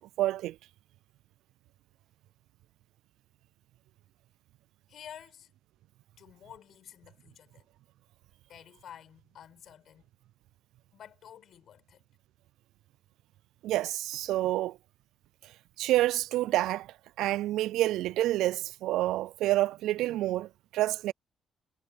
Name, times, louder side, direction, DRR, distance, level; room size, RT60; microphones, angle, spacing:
voice 1, 0.2-0.6 13.6-14.8 15.8-21.1, right 15 dB, 90° right, 0.4 m, -28 dB
voice 2, 4.9-5.5 6.2-7.7 8.5-10.0 10.9-12.0, left 9 dB, 65° left, 7.1 m, -51 dB
cardioid pair, 90°, 0 cm